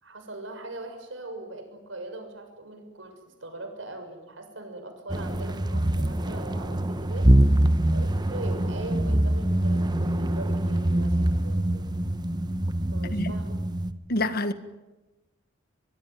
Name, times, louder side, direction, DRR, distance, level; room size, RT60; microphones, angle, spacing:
voice 1, 0.0-7.3 7.9-11.9 12.9-13.6, right 2 dB, 75° right, 6.8 m, -40 dB
sound 1, 5.1-13.9, right 1 dB, 20° right, 1.2 m, -24 dB
voice 2, 14.1-14.5, left 1 dB, 55° left, 1.6 m, -26 dB
23.5 x 22.5 x 9.5 m
head